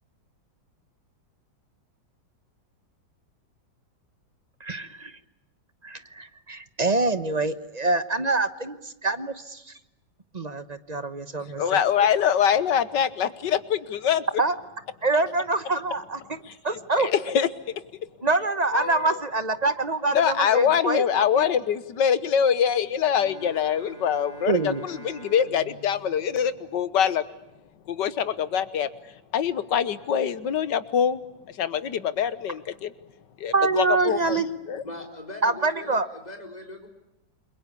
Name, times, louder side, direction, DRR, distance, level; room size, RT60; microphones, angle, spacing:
voice 1, 4.6-5.1 5.8-9.7 10.3-11.8 14.4-14.5 15.0-16.4 16.6-17.1 18.2-21.4 24.5-24.8 33.5-34.5 35.4-36.1, right 3 dB, 30° right, 12 dB, 0.9 m, -25 dB
voice 2, 11.6-14.2 16.4-16.5 16.9-17.5 18.7-19.2 20.1-27.2 27.9-28.9 29.3-31.2 31.5-32.9 33.4-34.4 34.7-34.8, left 8 dB, 75° left, 14 dB, 1.8 m, -24 dB
Bowed string instrument, 23.0-27.2, right 2 dB, 10° right, 3.2 m, -45 dB
voice 3, 34.8-36.9, left 1 dB, 20° left, 3 dB, 4.4 m, -40 dB
30.0 x 22.5 x 8.4 m, 0.88 s
omnidirectional pair, 2.0 m